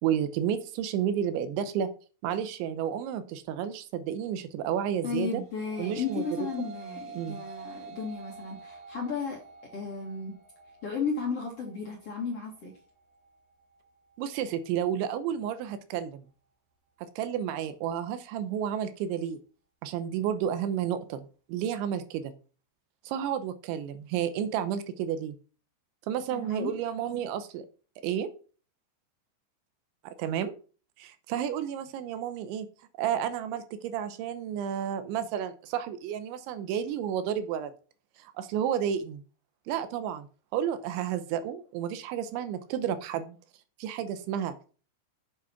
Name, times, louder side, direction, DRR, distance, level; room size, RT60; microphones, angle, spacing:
voice 1, 0.0-1.9 2.2-5.4 5.8-6.2 7.1-7.4 14.2-16.2 17.2-19.4 19.8-22.3 23.0-25.4 26.1-27.7 28.0-28.3 30.2-30.5 31.0-32.7 33.0-37.7 38.2-39.2 39.7-40.3 40.5-43.4 43.8-44.5, right 9 dB, 85° right, 11 dB, 3.1 m, -31 dB
voice 2, 5.0-9.4 9.7-10.3 10.8-12.7 26.3-26.7, left 5 dB, 50° left, -1 dB, 1.9 m, -34 dB
sound 1, 5.2-14.4, right 4 dB, 55° right, 4.1 m, -48 dB
8.5 x 7.6 x 5.8 m, 0.38 s
omnidirectional pair, 5.5 m